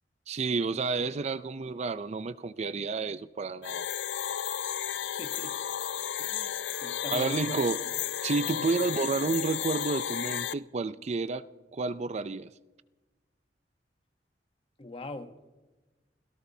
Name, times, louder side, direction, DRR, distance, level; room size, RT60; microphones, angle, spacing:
voice 1, 0.3-3.9 7.1-7.8 8.2-12.5, right 4 dB, 40° right, 0.4 m, -30 dB
sound 1, 3.6-10.5, left 10 dB, 80° left, 0.4 m, -33 dB
voice 2, 5.2-5.5 6.0-7.6 8.5-8.7 14.8-15.4, left 1 dB, 30° left, 1.0 m, -42 dB
29.5 x 17.5 x 2.7 m
head